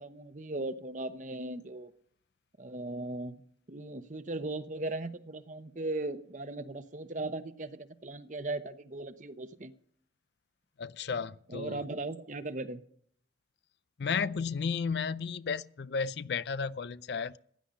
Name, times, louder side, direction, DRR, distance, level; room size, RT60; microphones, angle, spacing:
voice 1, 0.0-1.9 2.6-3.4 3.7-9.7 11.5-12.8, right 2 dB, 40° right, 0.9 m, -38 dB
voice 2, 10.8-11.8 14.0-17.4, left 5 dB, 65° left, 0.5 m, -33 dB
16.0 x 10.0 x 5.2 m
head